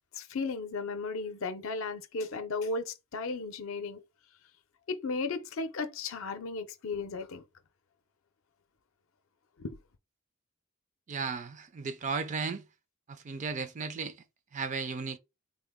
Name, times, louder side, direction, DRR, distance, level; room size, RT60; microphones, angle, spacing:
voice 1, 0.1-4.0 4.9-7.4 9.6-9.8, left 3 dB, 65° left, 0.5 m, -35 dB
voice 2, 11.1-12.7 13.1-14.2 14.5-15.2, right 5 dB, 35° right, 0.4 m, -35 dB
3.7 x 2.1 x 3.5 m
head